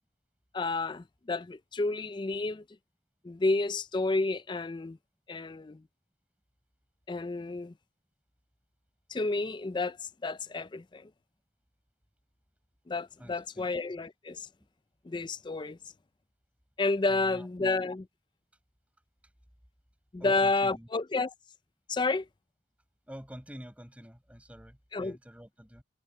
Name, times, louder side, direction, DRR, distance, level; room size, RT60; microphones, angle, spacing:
voice 1, 0.5-2.6 3.2-5.0 5.3-5.8 7.1-7.7 9.1-11.1 12.9-14.5 15.0-15.8 16.8-18.1 20.1-21.3 21.9-22.3 24.9-25.2, left 3 dB, 25° left, 0.4 m, -30 dB
voice 2, 13.2-13.7 17.1-17.5 19.2-19.3 20.2-20.9 23.1-25.8, equal, 5° right, 5.6 m, -48 dB
head